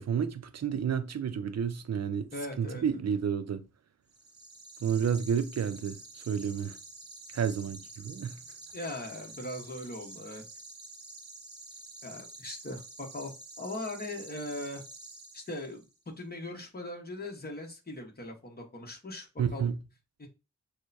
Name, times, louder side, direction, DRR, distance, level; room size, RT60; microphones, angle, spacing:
voice 1, 0.0-2.3 2.6-3.6 4.8-6.8 7.3-8.4 19.4-19.8, right 7 dB, 60° right, 0.5 m, -30 dB
voice 2, 2.3-3.0 8.7-10.4 12.0-14.8 15.3-19.7 20.2-20.3, left 1 dB, 30° left, 1.1 m, -40 dB
sound 1, 4.1-15.9, right 2 dB, 35° right, 0.9 m, -48 dB
6.3 x 2.2 x 2.6 m
wide cardioid pair, 80°, 30 cm